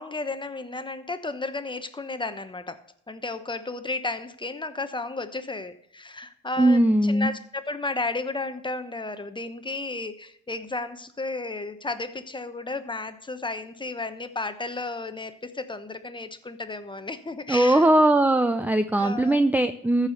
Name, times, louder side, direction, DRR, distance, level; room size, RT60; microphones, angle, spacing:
voice 1, 0.0-17.9 19.0-19.4, left 3 dB, 15° left, 10 dB, 1.0 m, -33 dB
voice 2, 6.6-7.3 17.5-20.1, right 1 dB, 5° right, 10 dB, 0.5 m, -20 dB
14.0 x 4.9 x 6.5 m, 0.69 s
cardioid pair, 90°, 30 cm